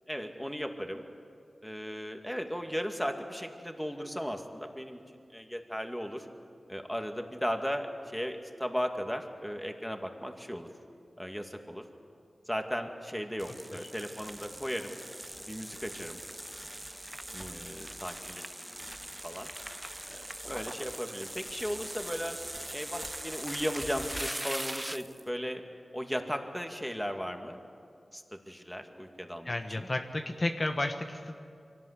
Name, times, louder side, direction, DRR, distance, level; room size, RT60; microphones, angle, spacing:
voice 1, 0.1-1.0 1.6-5.0 5.3-6.3 6.7-10.7 11.2-11.8 12.5-15.0 15.4-16.2 17.3-19.0 19.2-19.5 20.1-22.4 22.7-25.6 25.9-27.6 28.1-29.9, equal, 5° left, 4 dB, 2.2 m, -36 dB
sound 1, 13.4-25.2, right 1 dB, 15° right, 0.5 m, -41 dB
voice 2, 29.4-31.4, left 2 dB, 45° left, 4 dB, 1.2 m, -32 dB
23.5 x 17.5 x 8.3 m, 2.4 s
cardioid pair, 45°, 0 cm